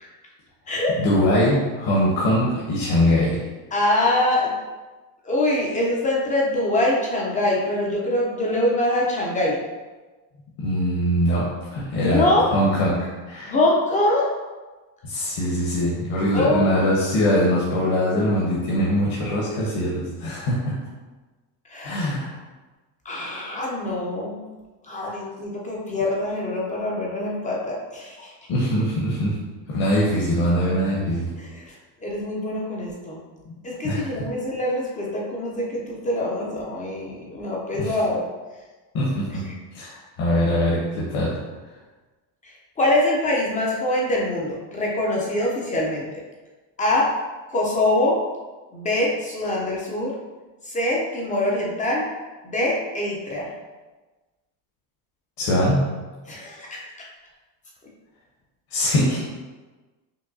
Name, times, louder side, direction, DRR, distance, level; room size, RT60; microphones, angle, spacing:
voice 1, 1.0-3.4 10.6-13.0 13.3-13.6 15.0-20.8 21.8-22.3 25.1-25.2 28.5-29.4 29.7-31.3 33.8-34.3 37.7-37.9 38.9-41.4 55.4-55.8 58.7-59.2, equal, 50° left, -6 dB, 0.9 m, -22 dB
voice 2, 3.7-4.5 5.2-9.6 12.0-12.5 13.4-14.3 16.3-16.7 21.7-22.0 23.1-24.4 24.9-28.3 31.4-31.6 32.0-33.2 33.6-38.3 42.4-46.1 46.8-47.1 47.5-48.2 48.7-50.1 50.6-52.0 52.4-53.5 56.3-56.8, left 1 dB, 20° left, -3 dB, 0.3 m, -24 dB
5.3 x 2.2 x 2.5 m, 1.2 s
cardioid pair, 135°, 48 cm